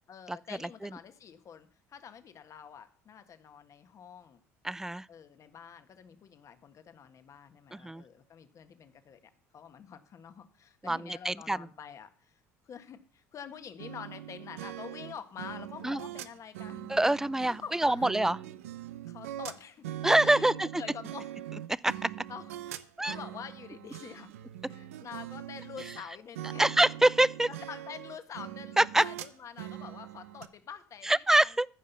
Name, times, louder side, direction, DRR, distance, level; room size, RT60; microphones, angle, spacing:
voice 1, 0.1-4.4 5.1-12.4 12.6-16.9 17.4-18.1 19.1-19.9 20.2-21.3 22.3-24.3 24.6-26.8 27.5-31.5, left 7 dB, 45° left, 1.6 m, -47 dB
voice 2, 4.6-5.1 7.7-8.0 10.8-11.6 15.8-16.0 16.9-18.4 20.0-20.5 21.8-22.1 23.0-23.2 26.6-27.5 28.8-29.0 31.0-31.7, right 1 dB, 5° right, 0.4 m, -25 dB
sound 1, 13.8-26.0 26.4-30.5, right 12 dB, 85° right, 0.7 m, -42 dB
14.5 x 5.6 x 6.9 m
hypercardioid pair, 70°, 7 cm